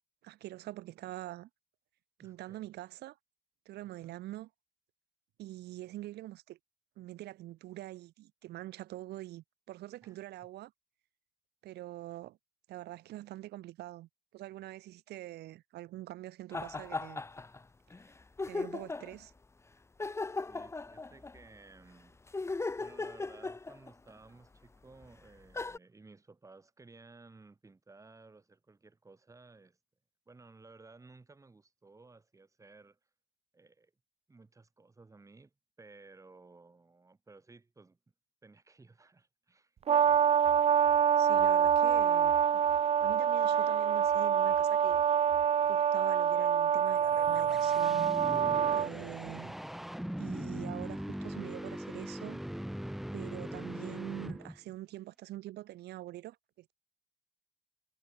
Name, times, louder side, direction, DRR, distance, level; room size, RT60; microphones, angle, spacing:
voice 1, 0.2-1.5 2.2-3.2 3.7-4.5 5.4-6.6 7.0-10.7 11.6-12.4 12.7-17.2 18.5-19.3 41.2-45.0 45.7-48.1 48.7-49.6 50.2-52.4 53.1-56.7, right 15 dB, 75° right, 7.3 m, -45 dB
voice 2, 2.2-2.7 3.8-4.2 10.0-10.2 20.3-22.2 22.8-29.8 30.3-33.1 33.5-33.9 34.3-38.0 38.4-39.8, right 3 dB, 20° right, 6.4 m, -57 dB
sound 1, 16.5-17.6 17.9-18.0 18.4-19.2 20.0-21.4 22.3-24.1 25.0-25.1 25.5-25.8, left 3 dB, 15° left, 1.4 m, -37 dB
Brass instrument, 39.9-48.9, right 8 dB, 35° right, 0.7 m, -26 dB
sound 2, 46.9-54.7, equal, ahead, 0.4 m, -40 dB
cardioid pair, 110°, 17 cm